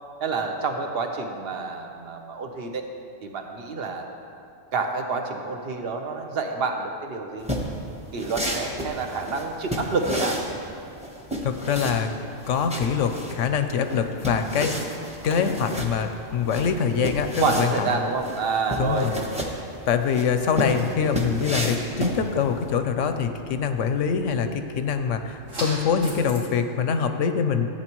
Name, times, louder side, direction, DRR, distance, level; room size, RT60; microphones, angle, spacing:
voice 1, 0.2-2.9 3.2-4.1 4.7-7.5 8.1-10.4 17.4-19.1, right 4 dB, 55° right, 4 dB, 1.0 m, -28 dB
sound 1, 7.4-22.7, equal, 5° right, 0.8 m, -31 dB
voice 2, 11.4-12.1 12.5-14.8 15.2-18.0 18.8-19.1 19.9-27.7, left 6 dB, 75° left, 8 dB, 0.9 m, -24 dB
sound 2, 21.3-26.4, right 1 dB, 75° right, 3.0 m, -41 dB
14.5 x 8.7 x 3.0 m, 2.6 s
omnidirectional pair, 1.4 m